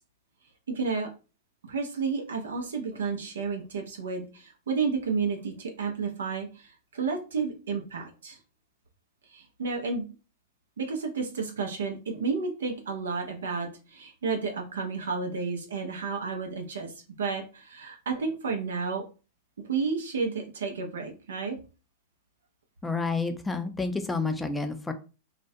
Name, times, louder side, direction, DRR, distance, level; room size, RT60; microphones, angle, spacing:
voice 1, 0.7-1.1 1.7-8.4 9.3-10.0 10.8-16.9 17.2-19.0 19.6-21.6, right 5 dB, 85° right, 3 dB, 0.5 m, -31 dB
voice 2, 22.8-24.9, left 3 dB, 10° left, 7 dB, 0.4 m, -29 dB
2.3 x 2.1 x 2.6 m, 0.33 s
hypercardioid pair, 115°, 0 cm